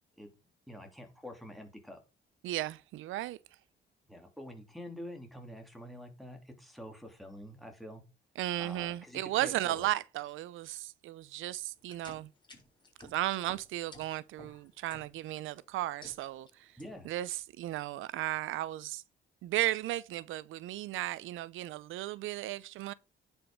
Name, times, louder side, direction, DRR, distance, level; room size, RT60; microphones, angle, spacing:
voice 1, 0.7-2.0 4.1-8.0 8.6-9.9 16.8-17.1, left 1 dB, ahead, 3.2 m, -47 dB
voice 2, 2.4-3.4 8.4-12.3 13.1-16.7 17.0-19.0 19.4-22.9, right 15 dB, 85° right, 0.6 m, -35 dB
sound 1, 11.8-15.4 15.8-16.5 16.8-17.2, left 2 dB, 25° left, 4.5 m, -54 dB
9.9 x 5.7 x 5.2 m
cardioid pair, 90°, 20 cm